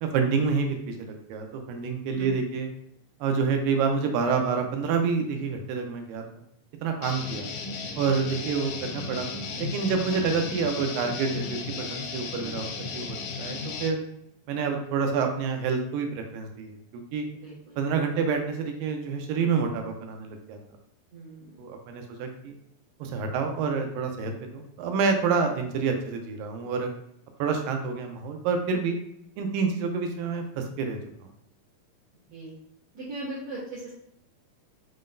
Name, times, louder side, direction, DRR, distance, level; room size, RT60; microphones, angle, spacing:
voice 1, 0.0-2.7 3.2-6.2 6.8-7.5 8.0-9.3 9.6-14.0 14.5-16.7 17.1-17.3 17.8-20.6 21.6-22.5 23.0-26.9 27.4-29.0 29.4-31.3, right 5 dB, 80° right, 4 dB, 2.3 m, -28 dB
Guitar, 7.0-13.9, left 4 dB, 80° left, 1.8 m, -35 dB
voice 2, 17.4-17.8 21.1-21.6 32.3-32.5 32.9-33.9, right 2 dB, 60° right, -9 dB, 2.0 m, -38 dB
5.5 x 3.8 x 2.5 m, 0.75 s
omnidirectional pair, 4.0 m